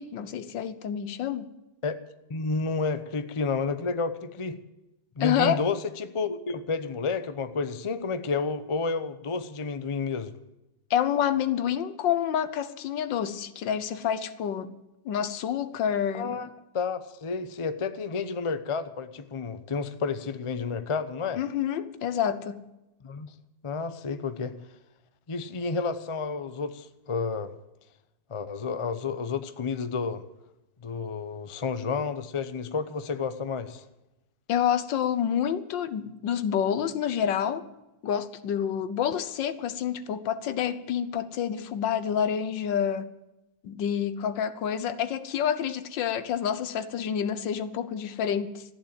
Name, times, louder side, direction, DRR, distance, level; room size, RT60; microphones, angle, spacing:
voice 1, 0.0-1.5 5.2-5.7 10.9-14.7 15.0-16.4 21.4-22.6 34.5-37.6 38.0-43.1 43.6-48.6, left 9 dB, 80° left, 1.6 m, -28 dB
voice 2, 2.3-4.6 5.2-10.3 16.1-16.5 16.7-21.4 23.0-23.3 23.6-24.5 25.3-27.5 28.3-30.2 30.8-33.8, left 4 dB, 30° left, 0.5 m, -30 dB
14.5 x 10.5 x 8.9 m
omnidirectional pair, 2.0 m